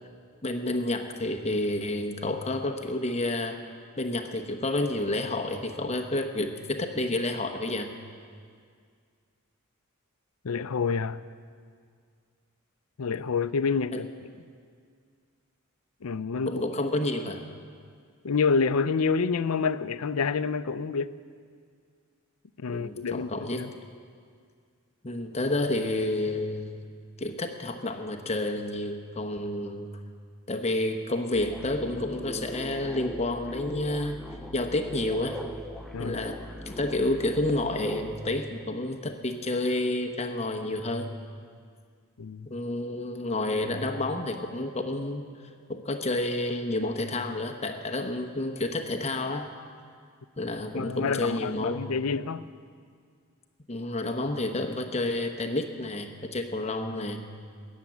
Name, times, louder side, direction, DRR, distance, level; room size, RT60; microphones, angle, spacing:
voice 1, 0.4-3.6 4.0-7.9 13.9-14.0 16.5-17.4 22.7-23.6 25.0-26.8 27.2-29.9 30.5-34.2 34.5-35.4 36.0-41.1 42.5-45.3 45.7-49.5 50.4-51.8 53.7-57.2, left 2 dB, 30° left, 5 dB, 0.9 m, -30 dB
voice 2, 10.4-11.2 13.0-14.1 16.0-16.5 18.2-21.1 22.6-23.3 23.6-23.7 35.9-36.2 42.2-42.5 50.7-52.4 57.0-57.1, left 5 dB, 85° left, 14 dB, 0.5 m, -28 dB
sound 1, 31.3-38.4, equal, ahead, 0.6 m, -40 dB
21.0 x 7.4 x 9.4 m, 2.1 s
head